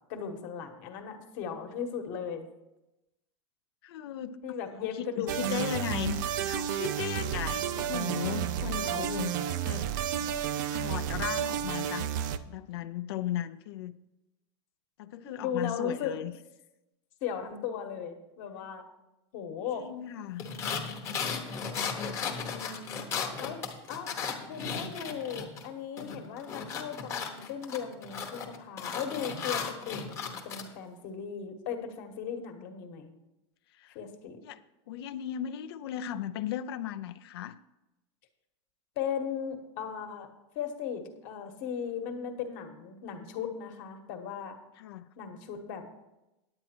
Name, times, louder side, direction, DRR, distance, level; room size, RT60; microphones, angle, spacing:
voice 1, 0.1-2.5 4.4-5.9 8.7-9.3 15.4-16.1 17.2-18.8 19.3-19.9 22.5-23.1 23.4-23.6 23.9-24.1 24.5-33.1 33.9-34.4 38.9-40.3 40.5-44.6 45.2-45.8, left 7 dB, 40° left, 6 dB, 1.3 m, -37 dB
voice 2, 3.8-9.4 9.6-9.9 10.7-12.1 12.5-13.9 15.0-16.3 19.8-20.5 33.7-34.0 34.4-34.6 34.9-37.6 44.8-45.1, left 11 dB, 60° left, 10 dB, 0.5 m, -36 dB
sound 1, 5.3-12.4, right 9 dB, 40° right, 0.4 m, -31 dB
sound 2, 20.4-25.7 26.0-30.6, left 6 dB, 20° left, 1.0 m, -35 dB
9.7 x 8.9 x 4.4 m, 0.95 s
supercardioid pair, 175°, 15 cm